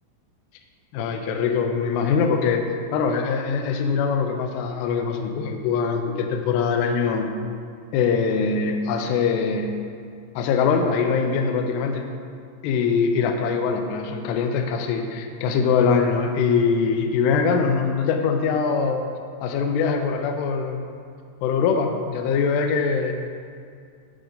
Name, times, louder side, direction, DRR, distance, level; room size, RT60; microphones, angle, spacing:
voice 1, 0.9-7.3 7.9-9.7 10.4-12.1 12.6-19.0 19.4-20.8 21.4-23.1, left 5 dB, 85° left, 5 dB, 2.4 m, -22 dB
10.0 x 5.2 x 3.9 m, 2.2 s
omnidirectional pair, 5.4 m